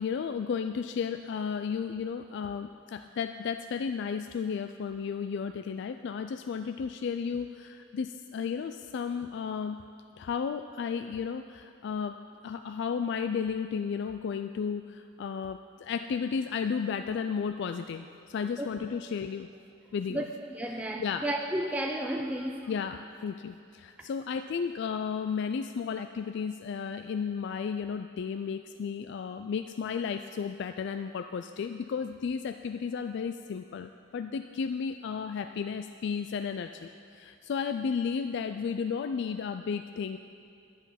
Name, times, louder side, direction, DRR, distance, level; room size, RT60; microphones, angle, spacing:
voice 1, 0.0-9.8 10.2-12.2 12.4-19.5 19.9-20.3 20.7-21.3 22.7-40.2, left 6 dB, 60° left, 8 dB, 0.3 m, -33 dB
voice 2, 20.1-22.6, right 1 dB, 5° right, 1 dB, 0.4 m, -32 dB
11.0 x 10.5 x 5.7 m, 2.4 s
head